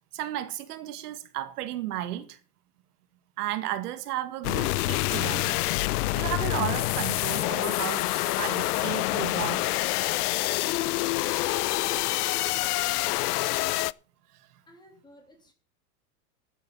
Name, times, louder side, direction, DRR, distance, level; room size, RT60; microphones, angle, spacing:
voice 1, 0.1-2.4 3.4-5.6 6.1-9.8, right 13 dB, 75° right, 2.0 m, -34 dB
sound 1, 4.4-13.9, left 19 dB, 70° left, 0.6 m, -27 dB
voice 2, 12.3-13.6 14.7-15.5, left 1 dB, 10° left, 3.0 m, -53 dB
13.5 x 8.4 x 5.6 m
supercardioid pair, 160°, 47 cm